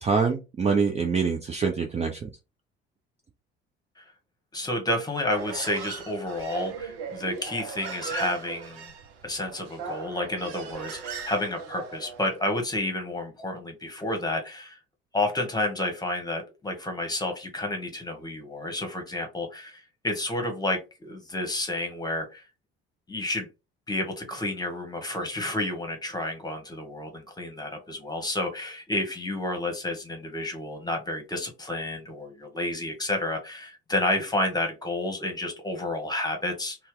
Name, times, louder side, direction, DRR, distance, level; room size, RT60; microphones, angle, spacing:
voice 1, 0.0-2.3, right 5 dB, 20° right, 3 dB, 0.5 m, -25 dB
voice 2, 4.5-8.9 9.2-14.8 15.1-22.4 23.1-23.5 23.9-36.8, left 1 dB, 10° left, 4 dB, 1.1 m, -30 dB
Human voice, 5.2-12.3, right 5 dB, 65° right, 0.7 m, -38 dB
2.7 x 2.2 x 3.7 m, 0.28 s
figure-of-eight pair, 50°, 32 cm